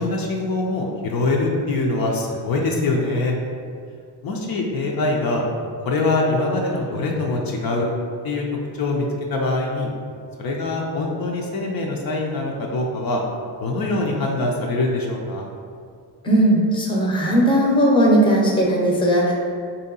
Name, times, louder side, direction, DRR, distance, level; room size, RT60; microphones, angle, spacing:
voice 1, 0.0-3.3 4.2-5.4 5.8-7.9 8.2-8.4 8.7-9.9 10.4-13.2 13.6-15.4, left 2 dB, 60° left, -1 dB, 0.6 m, -23 dB
voice 2, 16.2-19.3, right 1 dB, 10° left, -3 dB, 0.7 m, -17 dB
3.2 x 2.8 x 3.8 m, 2.3 s
cardioid pair, 105°, 41 cm